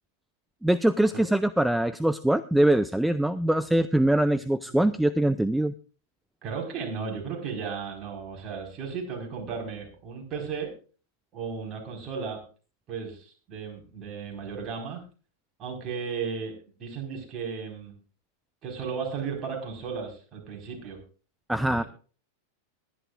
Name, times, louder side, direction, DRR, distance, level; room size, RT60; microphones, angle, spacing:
voice 1, 0.6-5.7 21.5-21.8, right 1 dB, 5° right, 17 dB, 0.5 m, -23 dB
voice 2, 6.4-10.7 11.3-12.4 12.9-15.0 15.6-17.9 18.6-21.0 21.6-21.9, right 5 dB, 30° right, 2 dB, 4.7 m, -35 dB
21.0 x 10.5 x 2.5 m, 0.37 s
figure-of-eight pair, 90°, 0 cm